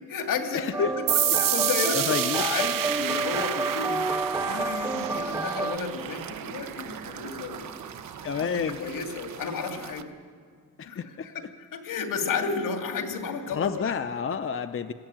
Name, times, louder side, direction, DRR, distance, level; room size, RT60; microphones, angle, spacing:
voice 1, 0.0-1.1 1.4-4.0 4.4-7.8 8.3-10.1 10.9-14.0, left 5 dB, 80° left, 4 dB, 2.5 m, -32 dB
voice 2, 0.5-1.2 2.1-2.4 8.2-8.8 10.8-11.3 13.5-14.9, left 6 dB, 40° left, 9 dB, 0.7 m, -29 dB
sound 1, 0.7-5.8, right 2 dB, 10° right, 0.5 m, -30 dB
sound 2, 1.1-8.5, right 11 dB, 85° right, 1.0 m, -30 dB
sound 3, 3.9-10.0, right 7 dB, 60° right, 1.2 m, -44 dB
21.0 x 15.0 x 9.0 m, 2.1 s
cardioid pair, 110°, 32 cm